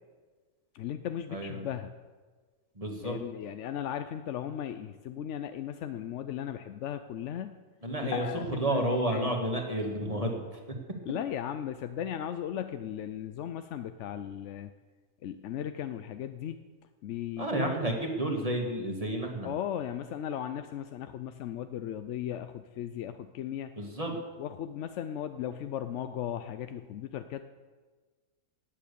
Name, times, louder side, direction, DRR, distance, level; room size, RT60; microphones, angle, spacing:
voice 1, 0.7-1.9 3.0-7.5 8.0-8.4 8.7-8.8 9.1-9.3 11.1-14.7 15.2-16.6 17.0-17.7 19.4-23.7 24.4-27.4, left 10 dB, 65° left, 9 dB, 0.8 m, -36 dB
voice 2, 1.3-1.7 2.8-3.2 7.8-8.2 8.6-10.6 17.4-19.5 23.8-24.2, right 1 dB, 25° right, 1 dB, 1.9 m, -31 dB
16.0 x 8.9 x 6.9 m, 1.4 s
omnidirectional pair, 1.6 m